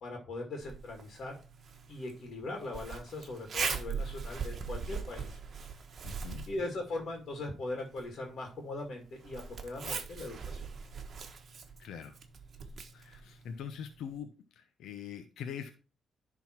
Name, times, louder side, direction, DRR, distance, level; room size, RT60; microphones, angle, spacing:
voice 1, 0.0-1.4 1.9-5.3 6.5-10.7, left 2 dB, 55° left, 2 dB, 2.2 m, -40 dB
Zipper (clothing), 0.6-14.2, right 5 dB, 50° right, 1.3 m, -42 dB
voice 2, 6.0-6.5 11.8-12.2 12.9-14.3 14.6-15.7, left 8 dB, 80° left, 7 dB, 0.8 m, -43 dB
10.5 x 3.9 x 4.5 m, 0.35 s
cardioid pair, 90°, 0 cm